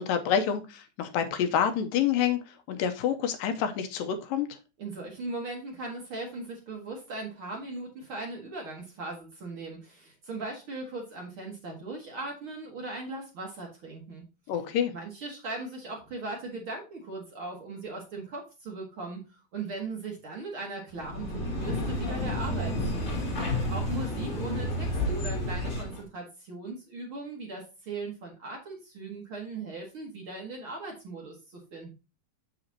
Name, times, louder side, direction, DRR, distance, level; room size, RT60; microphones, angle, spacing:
voice 1, 0.0-4.5 14.5-14.9, left 8 dB, 80° left, 8 dB, 2.4 m, -28 dB
voice 2, 4.8-14.2 14.9-31.9, right 3 dB, 45° right, 0 dB, 2.0 m, -39 dB
sound 1, 21.0-26.0, left 1 dB, 40° left, 4.1 m, -30 dB
7.8 x 7.0 x 2.8 m, 0.29 s
omnidirectional pair, 4.1 m